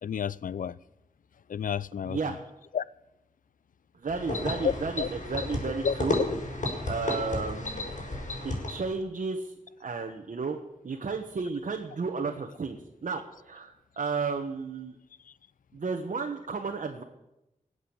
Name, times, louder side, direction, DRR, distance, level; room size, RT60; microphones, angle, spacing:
voice 1, 0.0-0.8 1.5-2.4 2.7-2.8 4.6-5.1 5.8-6.3, left 8 dB, 80° left, 20 dB, 0.5 m, -31 dB
voice 2, 2.0-2.4 4.0-6.2 6.8-7.8 8.4-9.5 9.8-10.6 10.8-14.9 15.7-17.0, right 4 dB, 70° right, 2 dB, 1.4 m, -33 dB
sound 1, 4.1-9.0, left 2 dB, 65° left, 5.6 m, -32 dB
19.0 x 8.2 x 7.2 m, 0.93 s
cardioid pair, 55°, 14 cm